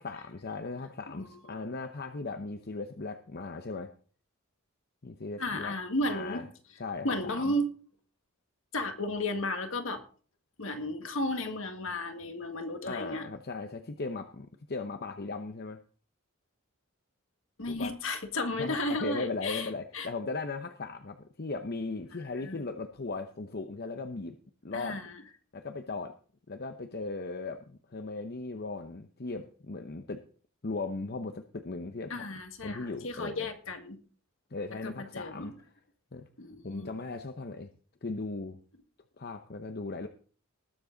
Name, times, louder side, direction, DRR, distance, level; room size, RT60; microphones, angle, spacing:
voice 1, 0.0-3.9 5.0-5.7 6.1-6.4 6.8-7.5 12.9-15.8 17.7-17.9 18.6-24.3 24.6-25.0 25.5-26.2 26.5-30.2 30.6-32.3 32.6-33.5 34.5-35.5 36.1-36.3 36.6-37.7 38.0-38.6 39.2-40.1, left 3 dB, 45° left, 7 dB, 0.8 m, -37 dB
voice 2, 1.2-1.6 5.4-6.4 7.0-7.7 8.7-10.0 10.6-13.3 17.6-19.7 19.9-20.1 22.4-22.6 24.7-25.2 32.1-34.0 34.8-35.6 36.4-36.9, left 1 dB, 65° left, 6 dB, 1.9 m, -34 dB
19.5 x 7.5 x 3.9 m, 0.42 s
head